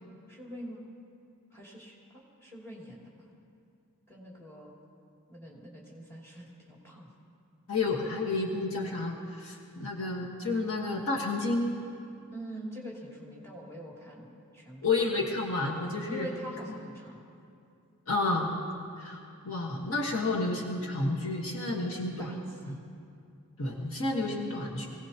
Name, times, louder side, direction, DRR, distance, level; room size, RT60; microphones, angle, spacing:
voice 1, 0.3-0.9 1.5-3.1 4.1-4.8 5.3-7.1 12.3-15.0 16.1-17.2 22.0-22.8, right 1 dB, 10° left, -4 dB, 2.8 m, -44 dB
voice 2, 7.7-11.8 14.8-16.3 18.1-18.5 19.0-19.2 19.4-22.3 22.7-22.8 23.6-24.9, left 3 dB, 65° left, -2 dB, 1.5 m, -30 dB
24.5 x 17.0 x 2.9 m, 2.5 s
head